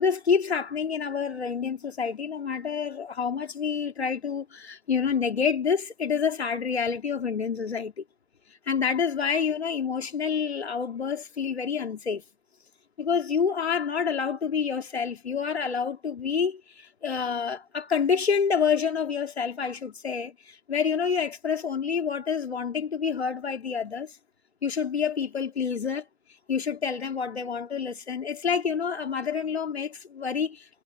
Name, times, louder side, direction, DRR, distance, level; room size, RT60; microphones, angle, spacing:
voice 1, 0.0-8.0 8.7-12.2 13.0-24.2 24.6-26.0 26.5-30.8, left 6 dB, 80° left, 2.9 m, -28 dB
hypercardioid pair, 170°, 32 cm